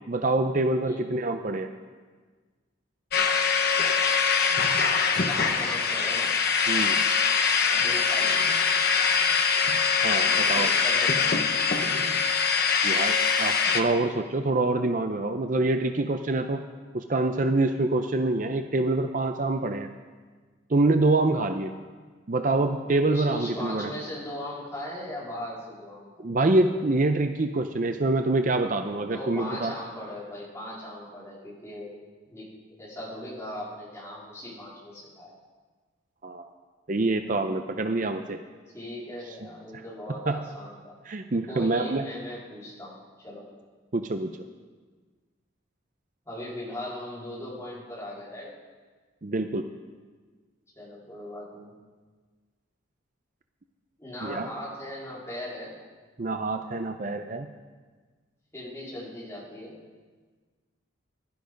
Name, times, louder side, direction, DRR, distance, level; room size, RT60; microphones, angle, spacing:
voice 1, 0.1-1.7 6.7-6.9 10.0-10.7 12.8-16.6 16.9-19.9 20.7-21.7 22.3-23.9 26.2-29.7 36.2-36.5 36.9-38.4 40.3-40.4 41.1-42.1 43.9-44.3 49.2-49.6 54.2-54.5 56.2-57.5, right 2 dB, 40° right, 7 dB, 0.5 m, -26 dB
sound 1, 3.1-13.8, left 5 dB, 50° left, 1.0 m, -23 dB
voice 2, 5.3-6.3 7.7-8.4 10.3-11.5 23.0-26.3 29.1-31.9 32.3-32.5 32.8-35.3 38.6-40.9 41.5-43.5 46.3-48.5 50.8-51.7 54.0-55.7 58.5-59.7, left 1 dB, 15° left, -7 dB, 4.1 m, -38 dB
15.0 x 12.0 x 5.3 m, 1.4 s
head